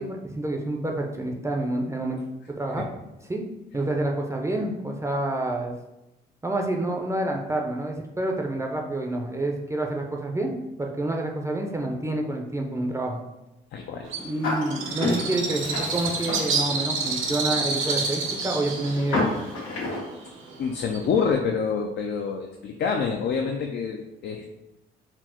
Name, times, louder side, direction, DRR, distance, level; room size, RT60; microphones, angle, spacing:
voice 1, 0.0-2.2 2.6-3.4 3.7-5.7 6.4-13.2 14.2-19.3, right 1 dB, 15° right, 1 dB, 0.5 m, -28 dB
voice 2, 13.7-14.1 20.6-24.6, left 5 dB, 60° left, 2 dB, 0.4 m, -27 dB
Bird, 14.1-21.3, right 4 dB, 85° right, 0.8 m, -29 dB
sound 1, 14.4-20.0, left 2 dB, 85° left, 1.4 m, -31 dB
4.3 x 2.0 x 4.2 m, 0.95 s
cardioid pair, 90°, 20 cm